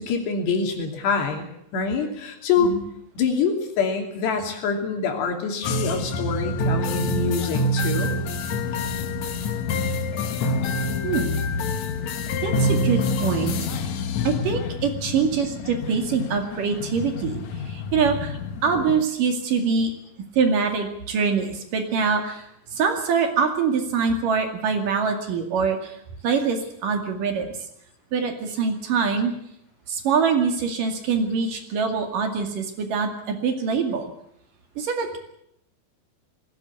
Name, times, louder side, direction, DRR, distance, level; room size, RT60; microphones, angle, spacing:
voice 1, 0.0-1.5 1.7-2.7 3.2-8.1, left 5 dB, 80° left, 4 dB, 4.9 m, -25 dB
sound 1, 5.6-19.0, left 2 dB, 60° left, 2.0 m, -27 dB
voice 2, 11.0-11.4 12.4-13.5 14.2-19.9 20.3-27.6 28.1-29.3 29.9-34.1 34.8-35.2, right 5 dB, 55° right, 5 dB, 3.7 m, -24 dB
20.0 x 16.5 x 8.5 m, 0.74 s
omnidirectional pair, 4.7 m